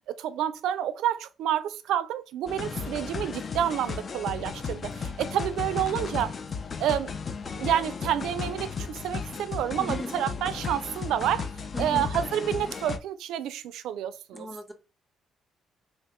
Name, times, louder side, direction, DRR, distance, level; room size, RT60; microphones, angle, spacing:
voice 1, 0.2-6.3 6.8-7.1 7.6-11.5 11.8-14.5, right 10 dB, 85° right, 0.3 m, -29 dB
sound 1, 2.5-13.0, left 5 dB, 45° left, 0.4 m, -35 dB
voice 2, 9.8-10.1 11.7-12.1 14.3-14.7, left 2 dB, ahead, 0.7 m, -37 dB
2.8 x 2.1 x 4.1 m
cardioid pair, 90°, 0 cm